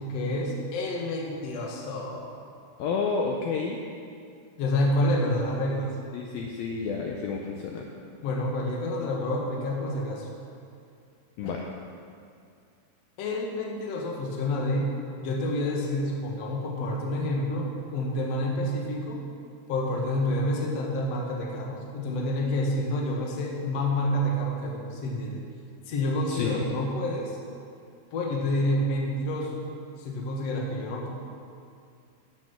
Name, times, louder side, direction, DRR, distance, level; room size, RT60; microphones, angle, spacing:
voice 1, 0.0-2.4 4.6-5.9 8.2-10.3 11.4-11.5 13.2-14.9 15.2-17.7 17.9-19.2 19.7-25.4 25.9-27.4 28.1-29.6 30.0-31.1, left 1 dB, 65° left, -1 dB, 1.6 m, -28 dB
voice 2, 2.8-3.8 6.1-7.9 11.4-11.7 26.3-26.6, left 5 dB, 85° left, 1 dB, 2.0 m, -30 dB
11.5 x 7.5 x 7.0 m, 2.4 s
omnidirectional pair, 5.2 m